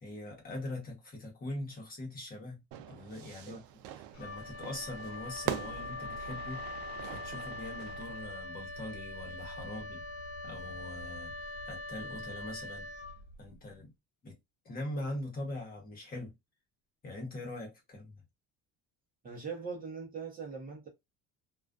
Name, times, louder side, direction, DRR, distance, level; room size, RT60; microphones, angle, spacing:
voice 1, 0.0-2.6 2.9-3.8 4.2-6.6 7.0-10.0 10.4-12.9 13.4-13.9 14.2-14.4 14.6-16.3 17.0-18.2, left 1 dB, 25° left, 1.0 m, -42 dB
Fire / Fireworks, 2.7-8.3, right 11 dB, 85° right, 0.5 m, -43 dB
Wind instrument woodwind instrument, 4.1-13.6, left 2 dB, 90° left, 1.2 m, -42 dB
voice 2, 19.2-20.9, right 5 dB, 25° right, 0.7 m, -41 dB
2.4 x 2.3 x 2.3 m
cardioid pair, 140°, 33 cm